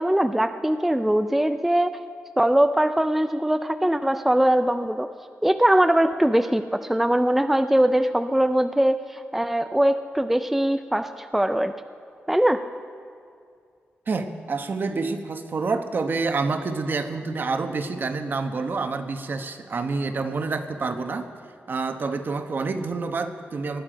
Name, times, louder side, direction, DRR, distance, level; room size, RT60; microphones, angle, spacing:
voice 1, 0.0-2.0 2.4-5.1 5.4-11.7 12.3-12.6, right 1 dB, 5° right, 8 dB, 0.4 m, -21 dB
voice 2, 14.1-21.3 21.7-23.8, right 4 dB, 50° right, 7 dB, 1.0 m, -28 dB
19.5 x 12.0 x 5.1 m, 2.3 s
wide cardioid pair, 100°, 4 cm